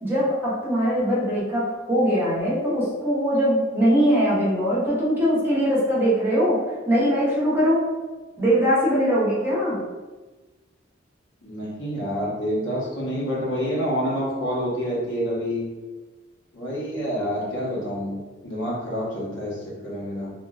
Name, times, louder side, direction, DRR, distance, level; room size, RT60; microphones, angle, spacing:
voice 1, 0.0-6.6 6.8-7.8 8.4-9.8, equal, 10° right, -9 dB, 0.9 m, -21 dB
voice 2, 11.4-15.7 16.5-18.2 18.4-20.3, equal, 75° left, -6 dB, 1.0 m, -27 dB
2.9 x 2.4 x 2.3 m, 1.2 s
head